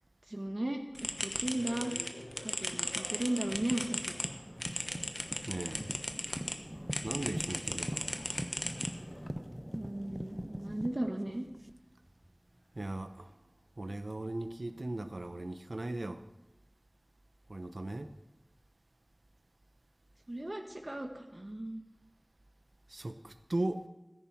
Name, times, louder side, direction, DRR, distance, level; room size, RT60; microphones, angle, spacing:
voice 1, 0.3-0.8 1.2-1.9 2.4-4.3 9.7-11.5 20.3-21.8, right 1 dB, 50° right, 1.1 m, -36 dB
sound 1, 0.9-6.6 6.9-9.3, left 1 dB, 40° left, 1.1 m, -37 dB
sound 2, 3.4-12.3 13.1-13.2, equal, 10° right, 0.3 m, -43 dB
voice 2, 5.5-5.9 7.0-8.1 12.7-13.4 13.8-16.3 17.5-18.1 22.9-23.9, right 2 dB, 75° right, 0.8 m, -38 dB
15.5 x 11.0 x 4.5 m
wide cardioid pair, 40°, 0 cm